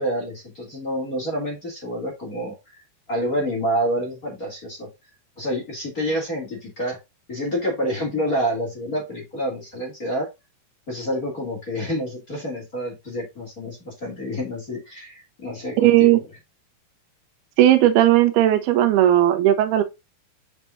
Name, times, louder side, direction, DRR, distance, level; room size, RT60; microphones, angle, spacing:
voice 1, 0.0-2.8 3.1-4.9 5.4-7.0 7.3-10.3 10.9-16.2, equal, 25° left, 2.7 m, -28 dB
voice 2, 15.8-16.2 17.6-19.8, right 13 dB, 85° right, 2.8 m, -16 dB
7.4 x 5.5 x 2.7 m
omnidirectional pair, 4.5 m